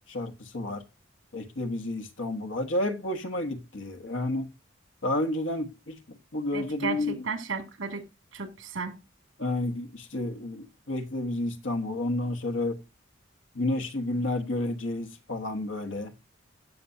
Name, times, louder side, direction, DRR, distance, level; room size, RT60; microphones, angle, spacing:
voice 1, 0.1-0.8 1.3-4.5 5.0-7.2 9.4-12.8 13.5-16.1, left 2 dB, 75° left, 1.4 m, -31 dB
voice 2, 6.5-8.0 8.3-8.9, right 4 dB, 85° right, 2.4 m, -34 dB
16.5 x 6.9 x 2.7 m
head